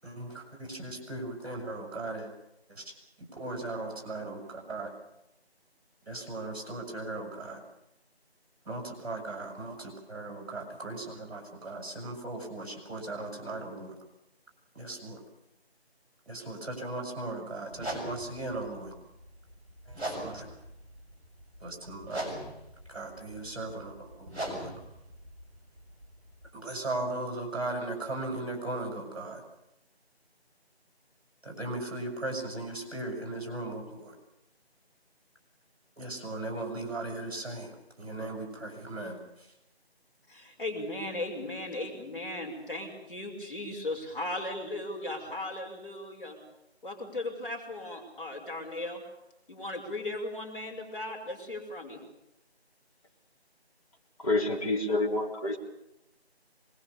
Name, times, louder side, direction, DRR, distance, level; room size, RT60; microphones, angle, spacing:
voice 1, 0.0-2.3 2.7-4.9 6.1-7.6 8.7-14.0 14.7-15.2 16.3-18.9 19.9-20.6 21.6-22.3 22.9-24.7 26.5-29.4 31.4-34.2 36.0-37.7 38.0-39.5, right 2 dB, 35° right, 1 dB, 7.1 m, -38 dB
sound 1, 17.7-26.5, right 1 dB, 10° right, 6.0 m, -41 dB
voice 2, 40.3-46.4 46.8-49.0 49.5-52.0, left 2 dB, 55° left, 0 dB, 5.6 m, -37 dB
voice 3, 54.2-55.6, left 2 dB, 35° left, -2 dB, 3.6 m, -28 dB
24.5 x 21.5 x 7.0 m, 0.88 s
figure-of-eight pair, 165°, 32 cm